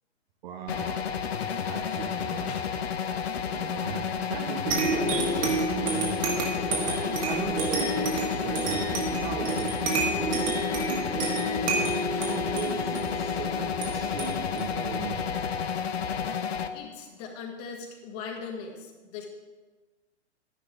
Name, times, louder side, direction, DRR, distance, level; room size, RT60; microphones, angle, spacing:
voice 1, 0.4-1.1 1.6-2.6 3.5-6.3 6.8-9.8 10.8-15.5, right 8 dB, 40° right, 4 dB, 0.9 m, -38 dB
sound 1, 0.7-16.7, left 7 dB, 60° left, 0.8 m, -31 dB
sound 2, 4.7-15.8, right 3 dB, 25° right, 1.7 m, -30 dB
voice 2, 16.7-19.3, left 5 dB, 35° left, 1 dB, 1.7 m, -40 dB
11.5 x 10.0 x 3.6 m, 1.3 s
figure-of-eight pair, 120°, 34 cm